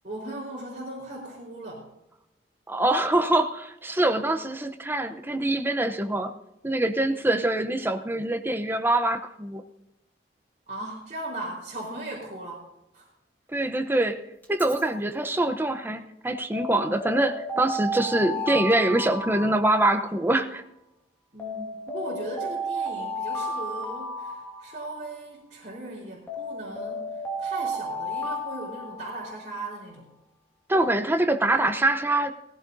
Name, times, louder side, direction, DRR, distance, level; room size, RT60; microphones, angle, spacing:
voice 1, 0.0-1.9 10.7-12.6 12.9-13.1 21.3-27.1 27.4-30.1, right 2 dB, 45° right, -7 dB, 4.2 m, -38 dB
voice 2, 2.7-6.3 6.6-9.6 13.5-14.2 14.5-20.6 30.7-32.3, right 1 dB, 15° right, 8 dB, 0.7 m, -24 dB
Alarm, 14.4-14.8 16.5-20.3 21.4-25.2 26.3-29.5, equal, 10° left, 2.0 m, -33 dB
17.5 x 16.0 x 2.7 m, 0.90 s
head